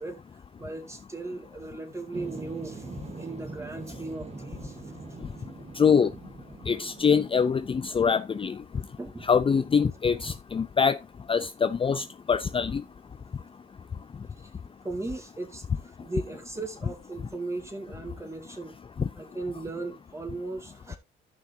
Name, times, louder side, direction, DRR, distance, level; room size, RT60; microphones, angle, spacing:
voice 1, 0.0-4.9 8.9-9.2 14.4-14.5 14.8-18.8 19.1-21.0, right 2 dB, 15° right, 2.3 m, -37 dB
sound 1, 2.1-7.5, right 3 dB, 30° right, 1.5 m, -42 dB
voice 2, 5.8-6.1 6.7-8.6 9.3-11.0 11.3-12.8, left 6 dB, 25° left, 0.5 m, -24 dB
14.0 x 6.0 x 2.8 m
cardioid pair, 90°, 20 cm